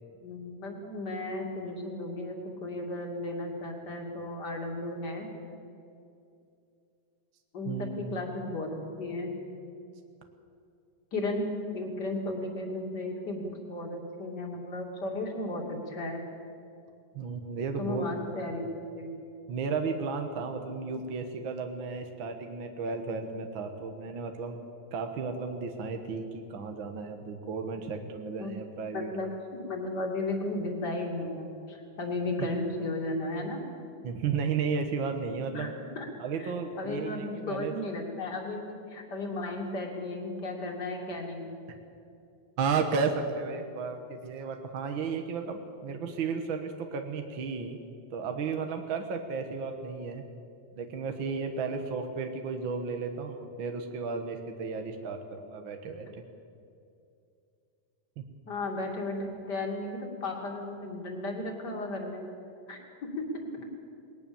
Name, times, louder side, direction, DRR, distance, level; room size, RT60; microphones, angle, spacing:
voice 1, 0.2-5.3 7.5-9.4 11.1-11.5 11.7-16.2 17.8-18.6 18.9-19.1 28.4-28.5 28.9-33.6 35.5-36.1 36.4-41.6 58.5-62.2 62.7-63.6, left 2 dB, 35° left, 1 dB, 3.1 m, -35 dB
voice 2, 7.6-8.2 17.1-18.1 18.3-18.5 19.5-24.6 24.9-29.1 34.0-35.7 36.2-37.7 42.6-47.8 48.1-50.2 50.8-56.2, right 5 dB, 55° right, 5 dB, 1.5 m, -33 dB
20.0 x 19.5 x 7.1 m, 2.6 s
omnidirectional pair, 3.6 m